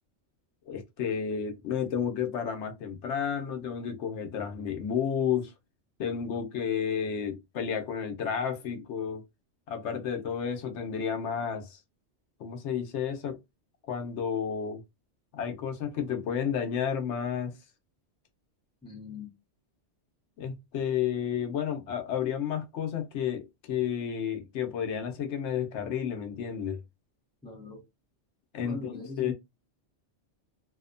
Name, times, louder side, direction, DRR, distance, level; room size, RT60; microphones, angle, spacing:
voice 1, 0.7-5.5 6.0-9.2 9.7-11.8 12.4-13.4 13.9-14.8 15.3-17.5 20.4-26.8 28.5-29.3, left 8 dB, 80° left, 0.9 m, -31 dB
voice 2, 18.8-19.3 27.4-27.8 28.6-29.3, left 3 dB, 5° left, 0.7 m, -40 dB
2.7 x 2.1 x 2.4 m
omnidirectional pair, 1.2 m